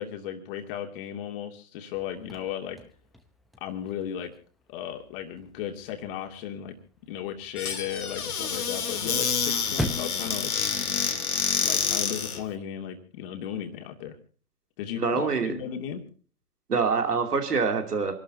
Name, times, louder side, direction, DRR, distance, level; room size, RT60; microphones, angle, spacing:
voice 1, 0.0-2.8 3.6-4.3 4.7-10.6 11.4-14.2 14.8-16.0, left 9 dB, 35° left, 4 dB, 2.6 m, -35 dB
Chirp tweet / Car / Slam, 1.9-11.9, equal, ahead, 0.9 m, -42 dB
Squeak / Cupboard open or close, 7.6-12.4, left 6 dB, 70° left, 2.2 m, -28 dB
voice 2, 15.0-15.5 16.7-18.1, right 5 dB, 80° right, 5 dB, 2.9 m, -25 dB
28.0 x 12.5 x 2.7 m, 0.39 s
figure-of-eight pair, 125°, 46 cm